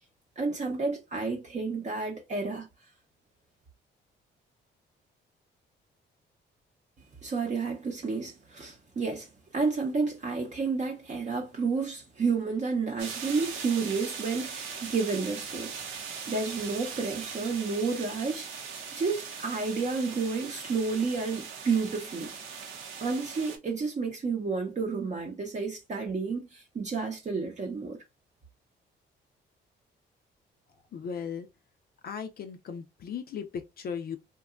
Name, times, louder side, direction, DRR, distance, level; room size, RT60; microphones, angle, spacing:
voice 1, 0.4-2.7 7.2-15.8 16.3-22.3 23.0-28.0, right 4 dB, 35° right, 0.6 m, -31 dB
sound 1, 13.0-23.6, right 6 dB, 80° right, 0.7 m, -40 dB
voice 2, 30.9-31.5 32.0-34.2, left 7 dB, 50° left, 0.4 m, -37 dB
2.8 x 2.2 x 2.3 m
cardioid pair, 90°, 20 cm